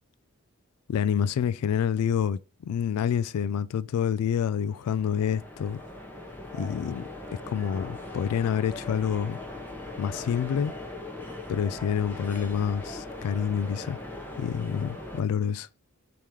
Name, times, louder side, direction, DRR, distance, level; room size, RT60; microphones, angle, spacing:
voice 1, 0.9-5.8 6.6-7.1 7.5-9.4 10.0-10.7 11.5-14.0 14.4-15.7, left 8 dB, 90° left, 0.3 m, -27 dB
sound 1, 4.4-15.2, left 2 dB, 10° left, 0.8 m, -40 dB
3.6 x 3.0 x 4.7 m
head